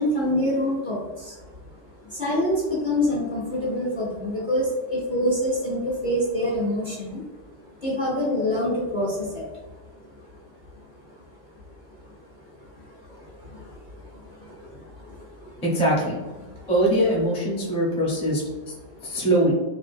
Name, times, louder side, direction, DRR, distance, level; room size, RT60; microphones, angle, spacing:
voice 1, 0.0-7.2 7.8-9.6 10.0-10.3 10.8-11.2 11.6-11.7 12.0-12.2 12.4-15.6 16.5-16.7 18.9-19.2, left 1 dB, 40° left, -7 dB, 0.8 m, -27 dB
voice 2, 15.6-16.2 16.7-18.7 19.0-19.5, right 1 dB, 5° left, -5 dB, 0.5 m, -22 dB
2.9 x 2.4 x 3.3 m, 1.2 s
omnidirectional pair, 1.8 m